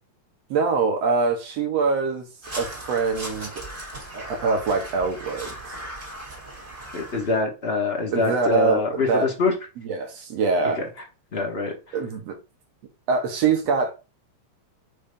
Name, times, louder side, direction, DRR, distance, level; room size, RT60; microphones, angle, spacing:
voice 1, 0.5-2.3 2.6-3.6 4.1-5.9 8.1-9.3 9.8-10.8 11.9-12.4 13.1-13.9, right 4 dB, 65° right, 2.0 m, -24 dB
Crow, 2.4-7.4, right 1 dB, 20° right, 2.2 m, -37 dB
voice 2, 6.9-9.5 10.8-10.9 11.3-12.0, left 3 dB, 70° left, 0.5 m, -24 dB
5.6 x 3.3 x 5.2 m
omnidirectional pair, 3.3 m